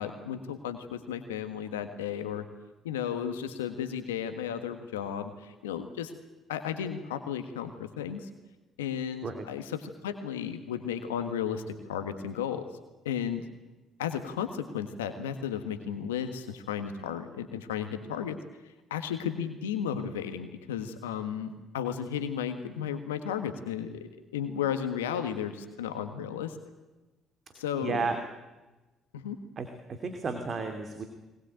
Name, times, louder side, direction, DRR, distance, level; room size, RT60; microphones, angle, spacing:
voice 1, 0.0-2.5 2.8-6.1 6.5-8.3 8.8-12.7 13.0-13.4 14.0-18.4 18.9-26.6 27.5-28.1 29.1-29.4, left 8 dB, 85° left, 8 dB, 1.5 m, -34 dB
voice 2, 27.5-28.2 29.6-31.0, right 4 dB, 45° right, 6 dB, 2.8 m, -33 dB
22.5 x 20.5 x 9.1 m, 1.1 s
hypercardioid pair, 55°, 0 cm